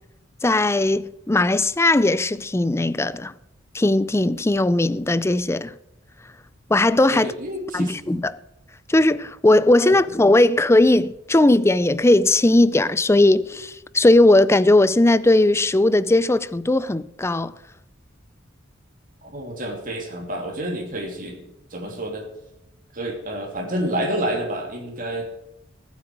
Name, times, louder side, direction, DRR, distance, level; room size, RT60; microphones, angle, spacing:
voice 1, 0.4-3.3 3.7-5.7 6.7-7.3 7.7-8.3 8.9-17.5, left 2 dB, 15° left, 0.5 m, -18 dB
voice 2, 7.1-8.0 9.8-10.0 19.2-21.4 21.7-22.3 22.9-25.3, right 1 dB, 45° right, 3.1 m, -29 dB
19.0 x 8.3 x 4.8 m
head